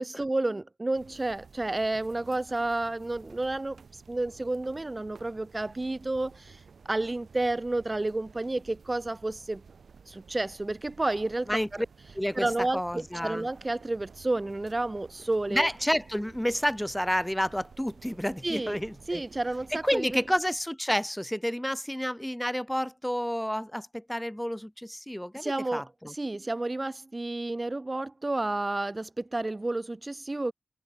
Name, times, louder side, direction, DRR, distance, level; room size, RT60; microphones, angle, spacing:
voice 1, 0.0-3.8 4.1-6.6 6.9-9.6 10.1-11.8 12.3-15.7 18.4-18.8 19.1-20.2 25.3-30.5, right 2 dB, 30° right, 0.8 m, -31 dB
sound 1, 0.9-20.7, right 5 dB, 80° right, 6.7 m, -53 dB
voice 2, 11.5-11.9 12.2-12.5 12.7-13.5 15.5-19.2 19.7-26.1, equal, 5° left, 1.7 m, -30 dB
wide cardioid pair, 75°, 0 cm